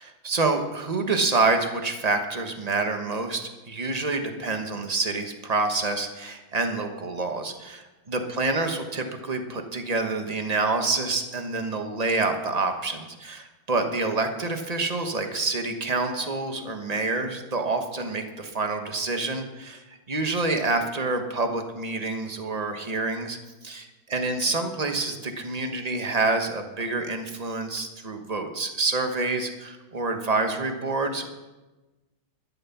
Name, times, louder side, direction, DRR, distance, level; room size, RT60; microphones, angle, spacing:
voice 1, 0.2-23.4 23.6-31.3, right 3 dB, 25° right, 5 dB, 1.0 m, -27 dB
12.5 x 10.5 x 5.9 m, 1.1 s
omnidirectional pair, 2.2 m